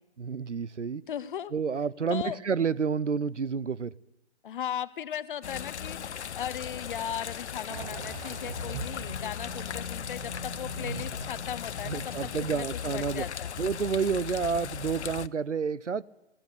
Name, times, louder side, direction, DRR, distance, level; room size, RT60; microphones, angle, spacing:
voice 1, 0.2-1.0 1.5-3.9 10.8-11.0 11.8-13.3 13.6-16.0, right 5 dB, 85° right, 23 dB, 0.9 m, -30 dB
voice 2, 1.1-1.5 2.1-2.4 4.4-13.5, left 9 dB, 45° left, 16 dB, 1.1 m, -37 dB
sound 1, 5.4-15.3, left 8 dB, 70° left, 0.7 m, -37 dB
sound 2, 7.7-12.9, right 7 dB, 40° right, 1.3 m, -43 dB
20.5 x 16.5 x 8.5 m, 0.95 s
figure-of-eight pair, 135°, 35 cm